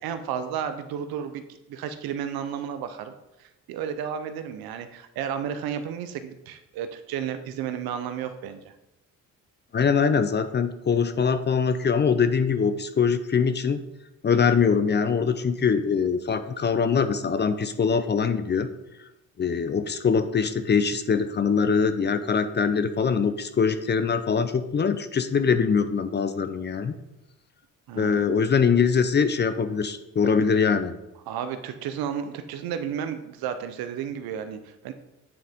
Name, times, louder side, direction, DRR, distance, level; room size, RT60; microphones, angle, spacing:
voice 1, 0.0-1.4 1.7-3.1 3.4-8.7 27.9-28.2 31.3-34.9, right 8 dB, 80° right, 9 dB, 0.7 m, -32 dB
voice 2, 9.7-13.8 14.2-18.7 19.4-26.9 28.0-31.0, left 6 dB, 30° left, 11 dB, 0.5 m, -23 dB
8.7 x 3.8 x 3.5 m, 0.91 s
cardioid pair, 75°, 36 cm